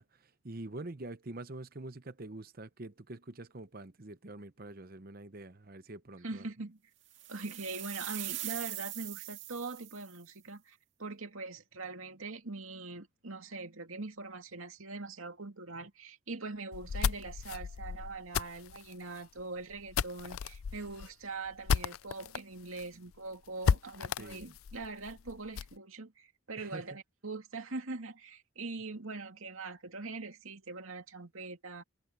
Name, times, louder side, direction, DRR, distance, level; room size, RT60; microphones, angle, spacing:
voice 1, 0.0-6.5 24.2-24.5 26.6-26.9, right 2 dB, 45° right, 0.9 m, -45 dB
voice 2, 6.2-6.8 7.3-31.8, right 3 dB, 80° right, 2.4 m, -42 dB
sound 1, 7.1-10.2, right 15 dB, 60° right, 2.1 m, -41 dB
sound 2, 16.7-22.4 22.8-22.9 23.1-23.2 23.6-25.8, left 6 dB, 80° left, 0.4 m, -34 dB
head